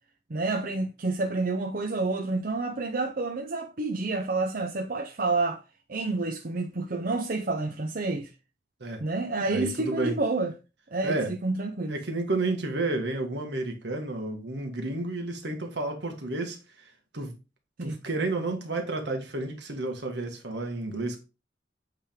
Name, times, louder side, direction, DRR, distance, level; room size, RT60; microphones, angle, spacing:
voice 1, 0.3-5.6 5.9-8.3 9.0-10.5 10.9-11.9 17.8-18.0, right 3 dB, 50° right, 0.6 m, -29 dB
voice 2, 9.5-10.2 11.0-11.3 11.9-17.3 17.8-21.2, right 2 dB, 75° right, 1.6 m, -31 dB
8.3 x 3.4 x 3.6 m
head